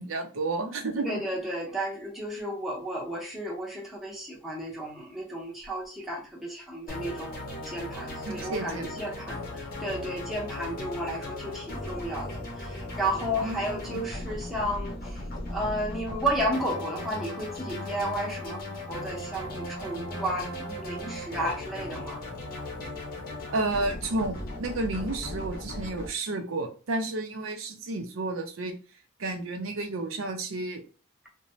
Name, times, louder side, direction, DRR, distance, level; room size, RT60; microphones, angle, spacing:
voice 1, 0.0-1.2 8.3-8.9 9.2-9.3 13.4-14.0 23.5-28.8 29.2-30.8, right 2 dB, 90° right, 0.6 m, -31 dB
voice 2, 1.0-15.2 15.5-22.2, right 1 dB, ahead, 0.7 m, -33 dB
sound 1, 6.9-26.1, left 1 dB, 45° left, 0.6 m, -37 dB
2.5 x 2.1 x 3.0 m
head